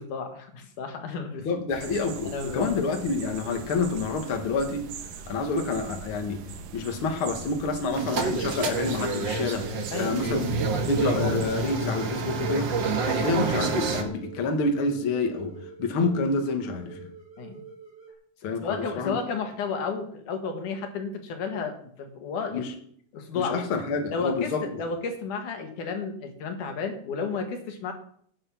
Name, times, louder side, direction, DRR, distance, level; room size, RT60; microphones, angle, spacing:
voice 1, 0.0-1.5 2.2-2.8 3.4-3.7 9.9-10.2 17.4-17.6 18.6-22.6 23.1-23.6 24.1-27.9, left 5 dB, 70° left, 5 dB, 3.1 m, -32 dB
voice 2, 1.4-4.9 5.3-6.4 6.7-9.7 10.0-10.5 10.8-12.7 13.0-17.1 18.4-19.2 22.5-22.7 23.3-24.6, left 3 dB, 45° left, 4 dB, 2.2 m, -28 dB
sound 1, 1.7-11.7, right 5 dB, 85° right, 2.8 m, -41 dB
sound 2, 7.9-18.1, right 6 dB, 5° left, 7.3 m, -47 dB
sound 3, 7.9-14.0, right 4 dB, 45° right, 1.6 m, -28 dB
17.5 x 7.7 x 6.0 m, 0.62 s
omnidirectional pair, 3.7 m